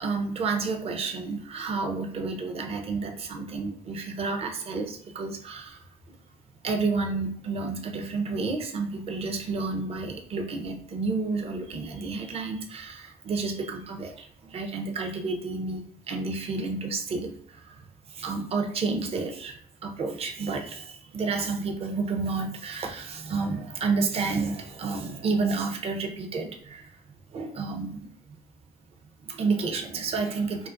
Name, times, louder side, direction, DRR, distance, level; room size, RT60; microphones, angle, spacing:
voice 1, 0.0-6.1 6.6-28.4 29.2-30.7, right 4 dB, 35° right, 4 dB, 0.5 m, -31 dB
2.5 x 2.4 x 2.4 m, 0.63 s
cardioid pair, 110°, 17 cm